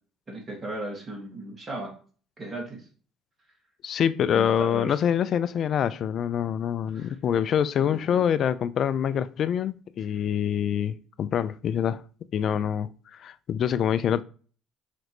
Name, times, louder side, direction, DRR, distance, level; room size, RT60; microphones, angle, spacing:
voice 1, 0.3-1.9 2.4-2.9 4.3-5.0 6.9-7.2 7.8-8.2, right 1 dB, 35° right, 2.2 m, -36 dB
voice 2, 3.8-12.0 12.3-14.2, left 9 dB, 55° left, 0.3 m, -25 dB
5.1 x 3.0 x 3.0 m
hypercardioid pair, 60°, 0 cm